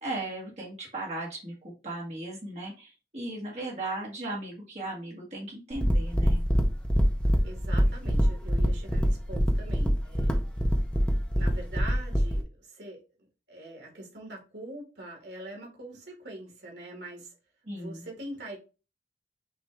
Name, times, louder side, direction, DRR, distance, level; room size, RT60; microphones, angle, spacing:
voice 1, 0.0-6.4 17.6-18.1, right 2 dB, 40° right, 1.4 m, -37 dB
sound 1, 5.7-12.4, equal, 5° left, 0.7 m, -25 dB
voice 2, 7.4-10.4 11.3-13.0 13.5-17.3 17.7-18.6, right 1 dB, 75° right, 2.0 m, -43 dB
6.0 x 2.5 x 3.3 m
head